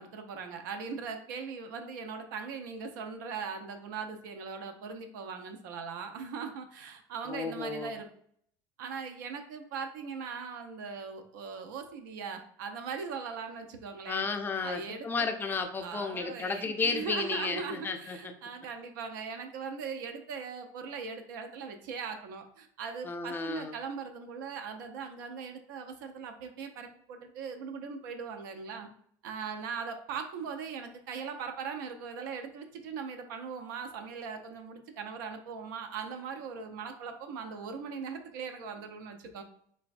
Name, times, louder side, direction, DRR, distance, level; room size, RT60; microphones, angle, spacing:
voice 1, 0.0-8.1 8.8-14.3 14.6-15.1 15.8-28.9 29.2-39.4, right 5 dB, 85° right, 5 dB, 0.4 m, -40 dB
voice 2, 7.3-7.9 14.1-18.3 23.0-23.8, left 4 dB, 20° left, 5 dB, 0.4 m, -33 dB
3.1 x 2.2 x 2.4 m, 0.65 s
supercardioid pair, 100°, 10 cm